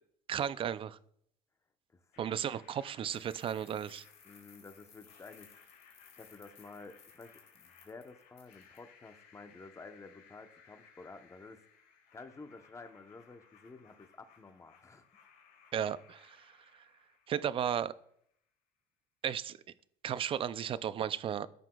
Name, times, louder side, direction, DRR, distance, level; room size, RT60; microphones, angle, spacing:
voice 1, 0.3-1.0 2.2-4.0 15.7-16.5 17.3-17.9 19.2-19.6 20.0-21.5, right 9 dB, 35° right, 17 dB, 0.4 m, -34 dB
sound 1, 2.1-18.1, left 6 dB, 60° left, 2.8 m, -62 dB
sound 2, 3.1-8.8, left 7 dB, 40° left, 2.0 m, -61 dB
voice 2, 4.2-5.5 6.1-11.6 12.1-15.3, left 3 dB, 15° left, 8 dB, 0.8 m, -52 dB
13.5 x 5.9 x 2.3 m, 0.69 s
cardioid pair, 115°, 17 cm